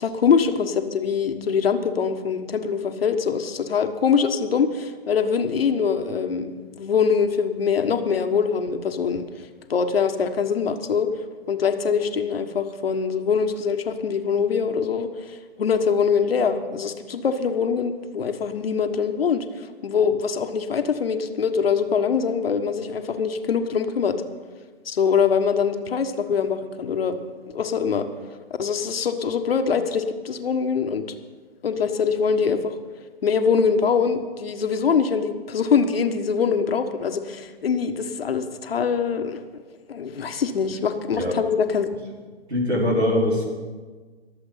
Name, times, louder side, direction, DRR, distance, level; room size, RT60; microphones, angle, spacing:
voice 1, 0.0-9.3 9.7-11.1 11.5-24.2 24.8-27.2 27.5-28.1 28.6-31.0 31.6-32.8 33.2-39.4 39.9-41.9, left 6 dB, 65° left, 8 dB, 1.4 m, -23 dB
voice 2, 42.5-43.4, left 1 dB, 85° right, -1 dB, 4.6 m, -22 dB
23.0 x 7.8 x 5.7 m, 1.4 s
figure-of-eight pair, 125°, 32 cm